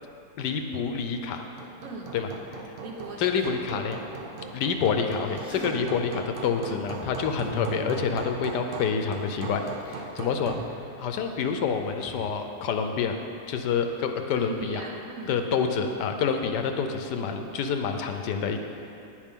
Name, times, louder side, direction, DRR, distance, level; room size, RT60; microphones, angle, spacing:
voice 1, 0.4-1.4 2.1-2.3 2.7-2.8 3.2-4.0 4.5-9.6 9.9-10.6 11.0-13.2 13.5-14.8 15.3-18.6, left 6 dB, 85° left, 6 dB, 1.3 m, -27 dB
Hammer, 1.1-10.8, right 4 dB, 80° right, 0.4 m, -40 dB
voice 2, 1.8-2.2 2.8-3.9 5.5-5.7 14.3-15.4, right 3 dB, 55° right, -1 dB, 1.5 m, -39 dB
sound 1, 3.0-3.6 4.4-4.5 4.9-9.1 9.4-10.0 10.3-12.4, equal, 5° right, 1.4 m, -42 dB
9.7 x 9.5 x 3.7 m, 2.7 s
omnidirectional pair, 1.8 m